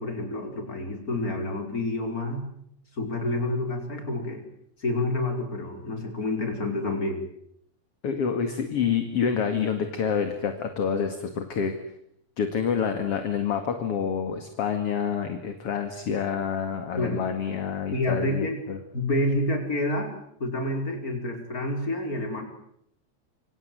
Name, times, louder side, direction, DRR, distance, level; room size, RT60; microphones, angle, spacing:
voice 1, 0.0-2.5 3.0-4.4 4.8-7.2 17.0-17.2 17.9-18.6 18.9-22.4, left 2 dB, 25° left, 4 dB, 5.6 m, -28 dB
voice 2, 8.0-11.7 12.4-18.8, left 7 dB, 50° left, 7 dB, 3.0 m, -27 dB
27.0 x 26.5 x 7.8 m, 0.73 s
omnidirectional pair, 3.4 m